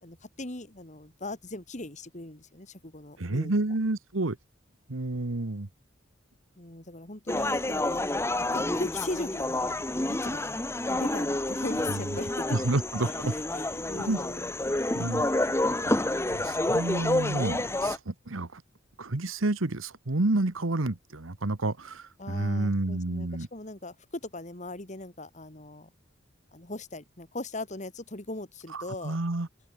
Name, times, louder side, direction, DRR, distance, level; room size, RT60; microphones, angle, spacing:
voice 1, 0.0-3.5 6.6-8.0 8.4-9.6 9.9-10.6 10.9-12.6 13.0-14.5 22.2-25.9 26.5-29.2, left 2 dB, 35° left, 2.8 m, -39 dB
voice 2, 3.2-4.4 4.9-5.7 11.9-12.0 12.5-13.3 14.0-14.2 14.9-15.3 15.8-16.0 16.3-18.6 19.0-23.5 28.7-29.5, right 2 dB, 90° right, 1.4 m, -29 dB
sound 1, 7.3-18.0, left 1 dB, 15° left, 1.2 m, -29 dB
head